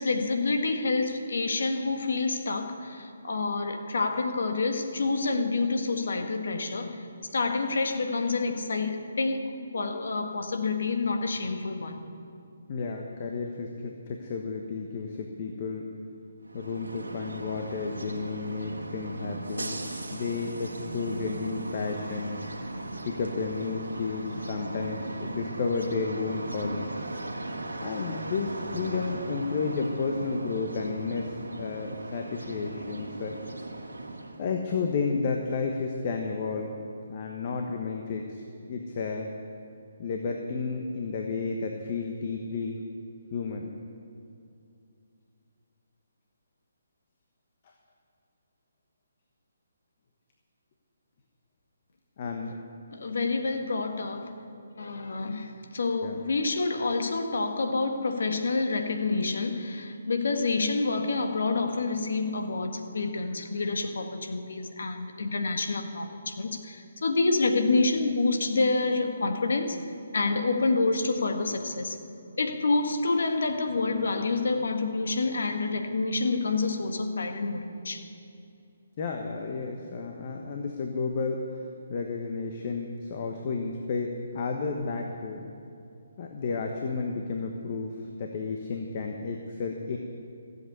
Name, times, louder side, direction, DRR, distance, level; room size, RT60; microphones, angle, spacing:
voice 1, 0.0-7.1 7.3-12.0 52.9-54.4 54.8-69.8 70.1-72.0 72.4-78.0, left 3 dB, 70° left, 5 dB, 1.5 m, -28 dB
voice 2, 12.7-15.9 16.5-22.4 23.0-26.9 27.8-33.3 34.4-36.7 37.1-39.3 40.0-42.8 43.3-43.7 52.2-52.6 56.0-56.2 79.0-81.4 81.9-85.4 86.2-90.0, left 4 dB, 40° left, 2 dB, 1.2 m, -32 dB
sound 1, 16.4-34.5, right 2 dB, 85° right, 1.6 m, -38 dB
15.5 x 8.2 x 8.2 m, 2.6 s
figure-of-eight pair, 145°, 0 cm